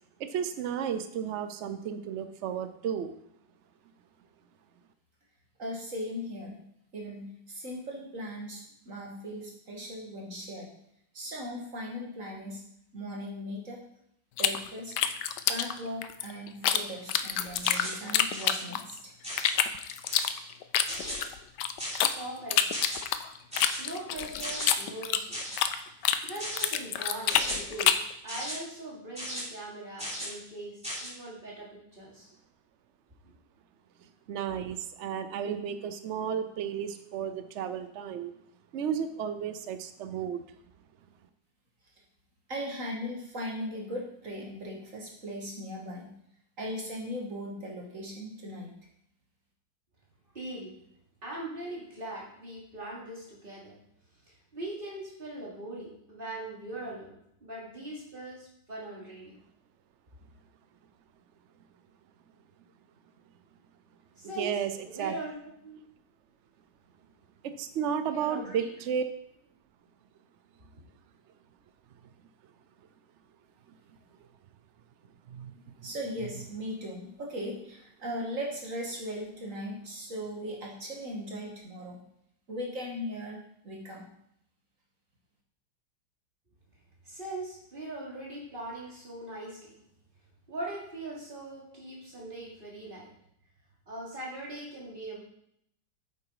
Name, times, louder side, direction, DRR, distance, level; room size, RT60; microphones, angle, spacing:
voice 1, 0.2-3.2 34.3-38.3 38.7-40.4 64.4-64.7 65.0-65.1 67.4-69.0 75.3-75.9, right 8 dB, 80° right, 10 dB, 0.6 m, -33 dB
voice 2, 5.6-6.6 6.9-10.7 11.1-12.6 12.9-13.8 14.4-14.9 15.5-19.1 42.5-46.1 46.6-48.7 75.8-82.0 82.5-84.0, equal, 45° right, -1 dB, 2.2 m, -38 dB
sound 1, 14.4-16.8 17.1-19.0 19.4-22.1 22.5-25.8 26.0-28.1, left 10 dB, 75° left, 1.2 m, -27 dB
sound 2, 17.6-18.0 18.3-18.6 19.2-19.6 20.0-20.4 20.9-21.2 21.8-22.2 22.7-23.0 23.5-23.8 24.4-24.7 25.3-25.6 26.4-26.7 27.3-27.6 28.3-28.6 29.2-29.4 30.0-30.3 30.8-31.1, equal, 5° right, 3.8 m, -36 dB
voice 3, 22.2-22.8 23.8-25.5 25.9-28.0 28.2-32.3 50.3-50.7 51.2-53.8 54.2-59.3 64.2-64.6 64.9-65.4 65.6-65.8 68.1-68.7 70.7-70.8 87.0-89.8 90.5-93.1 93.9-95.2, right 2 dB, 30° right, -4 dB, 3.0 m, -41 dB
8.4 x 7.7 x 4.8 m, 0.73 s
omnidirectional pair, 2.0 m